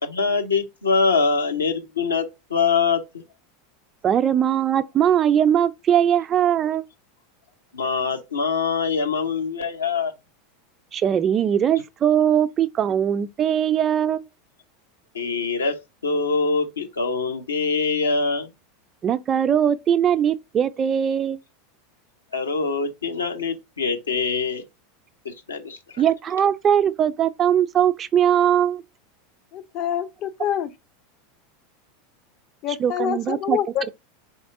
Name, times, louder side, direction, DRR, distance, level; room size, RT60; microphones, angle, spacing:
voice 1, 0.0-3.2 7.7-10.1 15.1-15.8 16.0-18.5 22.3-24.6 25.2-26.0, left 4 dB, 75° left, 0.7 m, -24 dB
voice 2, 4.0-6.8 10.9-14.2 19.0-21.4 26.0-28.8 32.8-33.6, right 9 dB, 30° right, 0.4 m, -20 dB
voice 3, 29.5-30.7 32.6-33.9, left 10 dB, 45° left, 0.5 m, -26 dB
4.1 x 3.4 x 2.5 m
figure-of-eight pair, 85°, 0 cm